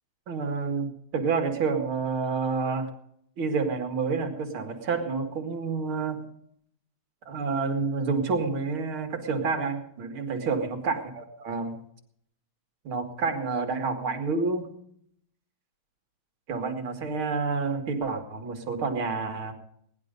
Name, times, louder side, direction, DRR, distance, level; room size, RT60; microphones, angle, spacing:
voice 1, 0.3-2.9 3.4-6.2 7.3-11.8 12.8-14.7 16.5-19.5, right 4 dB, 85° right, 5 dB, 2.9 m, -29 dB
19.0 x 11.0 x 5.3 m, 0.70 s
omnidirectional pair, 2.2 m